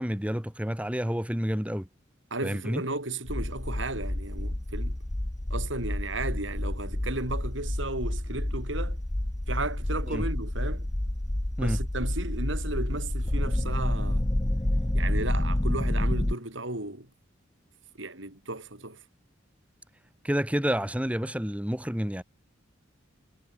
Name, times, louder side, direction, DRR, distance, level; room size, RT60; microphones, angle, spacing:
voice 1, 0.0-1.9 2.4-2.8 10.1-10.2 11.6-11.8 20.2-22.2, equal, 5° right, 1.6 m, -29 dB
voice 2, 2.3-5.0 5.5-9.0 9.5-10.9 11.6-14.3 14.9-17.1 18.0-19.0, right 2 dB, 70° right, 5.9 m, -34 dB
sound 1, 3.3-16.3, left 1 dB, 20° left, 0.7 m, -29 dB
head